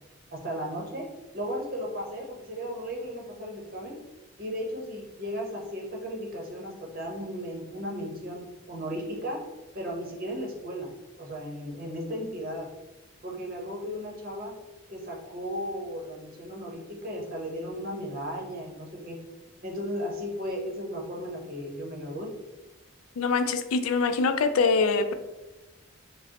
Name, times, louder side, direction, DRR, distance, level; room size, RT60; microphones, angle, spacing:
voice 1, 0.3-1.1 1.3-3.9 4.4-9.4 9.7-10.9 11.2-12.7 13.2-14.5 14.9-19.2 19.6-22.3, equal, 45° right, -2 dB, 0.8 m, -35 dB
voice 2, 23.2-25.1, left 4 dB, 85° left, 9 dB, 0.3 m, -24 dB
4.8 x 2.0 x 2.8 m, 1.0 s
head